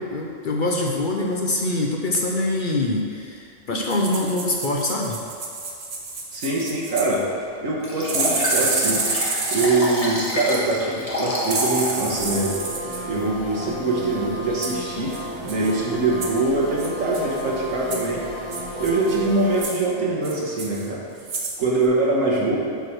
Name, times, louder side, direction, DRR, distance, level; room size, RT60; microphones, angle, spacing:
voice 1, 0.0-5.2, left 2 dB, 50° left, 0 dB, 0.7 m, -24 dB
sound 1, 3.8-7.2 8.1-9.9 11.5-13.0 14.6-14.8 15.1-15.2 15.5-15.7 16.2-16.4 16.8-17.4 17.9-18.1 18.5-19.2 19.5-19.8 20.2-20.9 21.2-21.6 21.8-21.9, right 3 dB, 45° right, 1.0 m, -28 dB
voice 2, 6.3-7.3 7.6-9.1 9.5-12.6 13.0-15.2 15.4-18.3 18.8-21.0 21.6-22.6, right 2 dB, 85° right, -4 dB, 1.8 m, -23 dB
Liquid, 7.8-12.0 12.5-12.6, left 1 dB, 30° left, 1.4 m, -28 dB
sound 2, 12.1-19.6, equal, 25° right, 1.1 m, -33 dB
6.9 x 4.8 x 6.0 m, 2.4 s
omnidirectional pair, 1.3 m